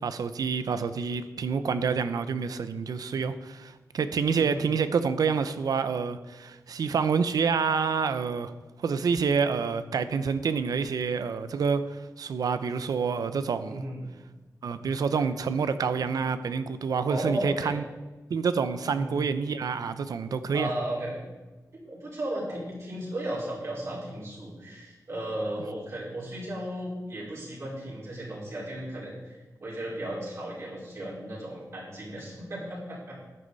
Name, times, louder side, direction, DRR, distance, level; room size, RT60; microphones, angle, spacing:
voice 1, 0.0-8.5 8.8-13.8 14.6-17.8 18.3-20.7, right 5 dB, 90° right, 12 dB, 0.7 m, -28 dB
voice 2, 4.2-4.7 13.7-14.1 15.2-15.3 17.1-17.7 18.9-19.3 20.5-21.3 21.7-33.2, right 1 dB, 50° right, -6 dB, 4.7 m, -35 dB
13.0 x 9.7 x 4.1 m, 1.2 s
wide cardioid pair, 170°, 6 cm